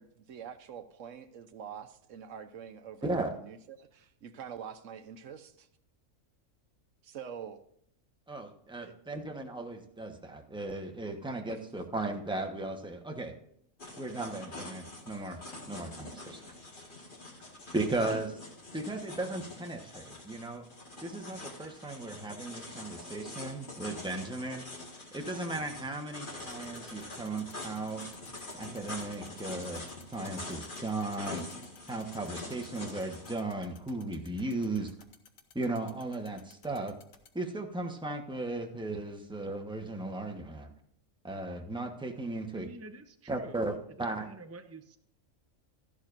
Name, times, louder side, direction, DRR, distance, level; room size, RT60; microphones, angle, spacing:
voice 1, 0.0-5.7 7.0-7.6 8.8-8.9 13.9-14.0 16.4-16.6 18.1-18.2, right 8 dB, 70° right, 10 dB, 1.1 m, -45 dB
voice 2, 3.0-3.3 8.3-13.3 14.0-16.4 17.7-18.3 18.7-20.6 21.0-24.6 25.1-28.0 28.5-29.8 30.1-31.4 31.9-34.9 35.5-37.0 37.3-40.7 41.2-42.7 43.3-43.7 44.0-44.3, right 2 dB, 5° right, 3 dB, 1.0 m, -36 dB
sound 1, 13.8-33.4, left 2 dB, 40° left, 2.0 m, -45 dB
sound 2, 26.4-37.3, left 7 dB, 80° left, 1.5 m, -56 dB
voice 3, 42.5-45.0, right 3 dB, 20° right, 6 dB, 0.4 m, -48 dB
13.0 x 11.5 x 2.6 m, 0.70 s
omnidirectional pair, 1.4 m